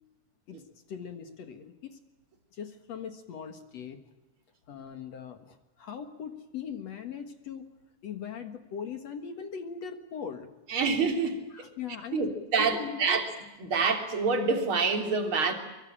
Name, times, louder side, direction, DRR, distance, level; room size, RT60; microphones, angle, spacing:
voice 1, 0.9-2.0 2.5-4.0 4.7-7.7 8.0-10.5 11.5-12.3 12.6-13.2, left 7 dB, 55° left, 8 dB, 2.0 m, -40 dB
voice 2, 10.7-11.7 12.1-13.3 13.6-15.5, right 4 dB, 35° right, 5 dB, 3.6 m, -27 dB
25.0 x 24.0 x 8.8 m, 1.0 s
omnidirectional pair, 4.9 m